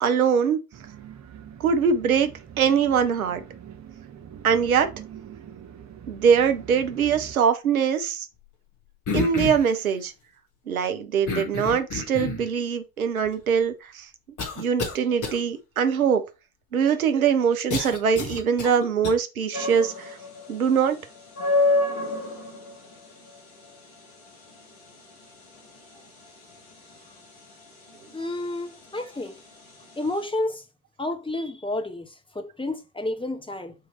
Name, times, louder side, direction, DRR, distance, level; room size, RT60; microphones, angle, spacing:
voice 1, 0.0-0.6 1.6-2.3 2.6-3.4 4.4-4.9 6.1-8.3 9.1-10.1 10.7-14.1 14.6-16.2 16.7-20.2 20.5-21.0, right 7 dB, 85° right, 0.6 m, -22 dB
sound 1, 0.7-7.4, right 9 dB, 40° right, 1.2 m, -44 dB
sound 2, 9.0-9.8 11.3-12.5 13.2-13.3 14.4-15.0 15.2-15.4 17.7-19.1, left 4 dB, 45° left, 1.8 m, -29 dB
sound 3, 19.5-30.3, left 2 dB, 75° left, 1.4 m, -30 dB
voice 2, 28.1-29.4 30.0-30.6 31.0-33.7, left 2 dB, 10° left, 1.1 m, -30 dB
7.9 x 3.1 x 4.4 m
figure-of-eight pair, 40°, 41 cm